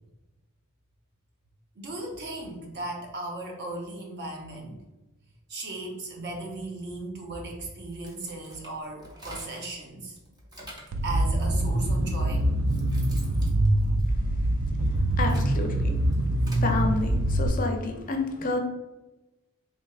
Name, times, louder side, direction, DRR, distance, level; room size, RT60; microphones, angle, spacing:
voice 1, 1.8-4.8 5.5-10.2 11.0-12.5, right 2 dB, 55° right, 0 dB, 0.7 m, -36 dB
sound 1, 7.9-9.8 10.2-11.0 11.9-12.0 12.4-14.6 15.0-16.7, right 1 dB, 20° right, 0.7 m, -46 dB
sound 2, 10.9-17.5, right 1 dB, 70° right, 0.4 m, -24 dB
voice 2, 15.2-15.9 16.6-18.6, left 3 dB, 40° left, 3 dB, 0.5 m, -29 dB
3.3 x 3.1 x 2.3 m, 1.1 s
head